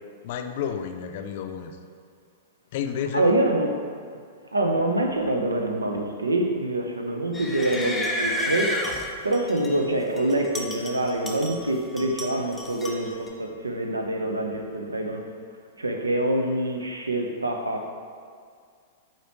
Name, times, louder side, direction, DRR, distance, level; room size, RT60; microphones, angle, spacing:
voice 1, 0.0-1.8 2.7-3.3, left 8 dB, 50° left, 7 dB, 0.5 m, -31 dB
voice 2, 3.1-3.7 4.5-8.8 9.2-15.3 15.8-17.9, right 1 dB, 80° right, 3 dB, 0.7 m, -25 dB
sound 1, 7.3-9.8 10.2-11.7 12.0-13.3, left 1 dB, 5° left, 0.7 m, -31 dB
8.0 x 4.5 x 3.0 m, 2.1 s
figure-of-eight pair, 100°, 0 cm